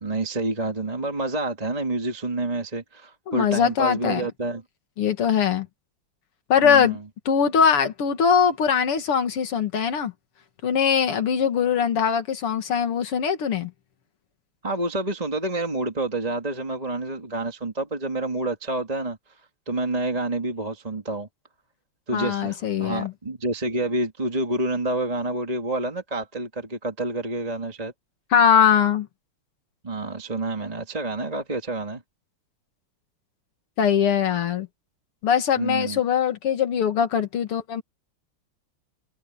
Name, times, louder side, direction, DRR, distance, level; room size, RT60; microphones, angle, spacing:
voice 1, 0.0-4.6 6.6-7.0 14.6-19.2 19.7-21.3 22.1-27.9 29.8-32.0 35.6-36.0, right 2 dB, 20° right, 2.1 m, -28 dB
voice 2, 3.3-4.3 5.0-5.7 6.5-7.0 7.3-10.1 10.6-13.7 22.1-23.1 28.3-29.1 33.8-34.7 35.2-37.8, left 7 dB, 85° left, 2.8 m, -21 dB
omnidirectional pair, 2.4 m